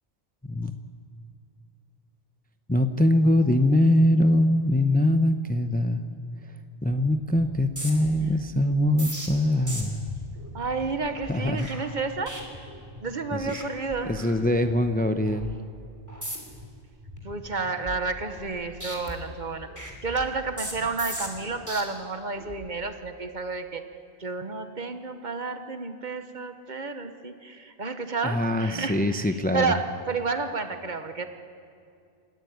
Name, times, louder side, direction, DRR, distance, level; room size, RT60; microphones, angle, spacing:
voice 1, 2.7-6.0 6.8-10.1 11.3-11.7 13.3-13.6 14.0-15.5 28.2-29.7, left 1 dB, 10° left, 8 dB, 0.6 m, -23 dB
sound 1, 7.6-13.1 13.4-13.6 13.9-14.9 15.3-15.5 16.1-16.6 17.0-18.5 18.8-21.8 22.4-22.7, equal, 15° right, 2.9 m, -39 dB
voice 2, 10.5-12.4 13.0-14.2 17.2-23.8 24.2-29.3 29.5-31.3, right 4 dB, 50° right, 8 dB, 1.3 m, -31 dB
26.5 x 13.0 x 9.4 m, 2.4 s
omnidirectional pair, 1.0 m